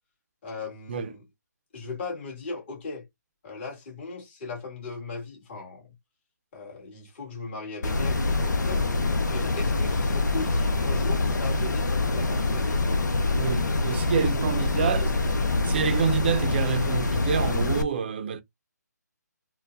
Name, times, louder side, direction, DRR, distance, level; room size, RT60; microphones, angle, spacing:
voice 1, 0.4-1.2 1.7-3.1 3.4-5.9 6.5-8.8 9.3-13.0 13.9-14.3 14.5-15.2, left 3 dB, 35° left, 2.0 m, -38 dB
sound 1, 7.8-17.8, left 2 dB, 75° left, 0.7 m, -25 dB
voice 2, 13.3-15.1 15.6-18.4, right 7 dB, 35° right, 0.5 m, -27 dB
4.4 x 2.3 x 2.6 m
figure-of-eight pair, 150°, 10 cm